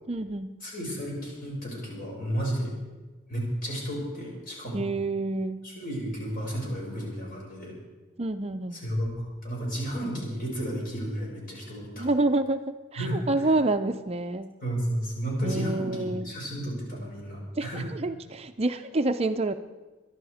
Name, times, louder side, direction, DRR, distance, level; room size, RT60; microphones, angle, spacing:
voice 1, 0.1-0.6 4.7-5.7 8.2-8.8 12.0-14.5 15.4-16.3 17.5-19.5, right 2 dB, 30° right, 8 dB, 0.5 m, -28 dB
voice 2, 0.6-2.7 3.3-4.8 5.6-7.7 8.7-12.1 13.0-13.2 14.6-17.9, equal, 45° left, -3 dB, 6.7 m, -32 dB
22.5 x 11.5 x 4.9 m, 1.3 s
head